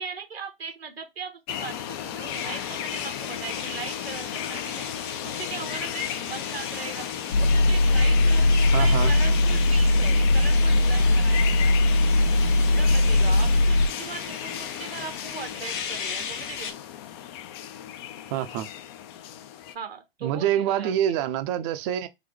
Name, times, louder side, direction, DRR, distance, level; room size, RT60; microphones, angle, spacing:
voice 1, 0.0-4.9 5.2-7.1 7.4-11.7 12.5-16.7 19.7-21.3, right 5 dB, 85° right, 1.2 m, -39 dB
sound 1, 1.5-19.8, left 10 dB, 25° left, 0.4 m, -35 dB
sound 2, 2.3-16.7, left 6 dB, 55° left, 1.0 m, -37 dB
sound 3, 7.3-13.9, left 2 dB, 85° left, 1.0 m, -20 dB
voice 2, 8.7-9.1 18.3-18.7 20.2-22.1, right 11 dB, 30° right, 0.5 m, -26 dB
3.9 x 3.0 x 3.3 m
hypercardioid pair, 120°, 29 cm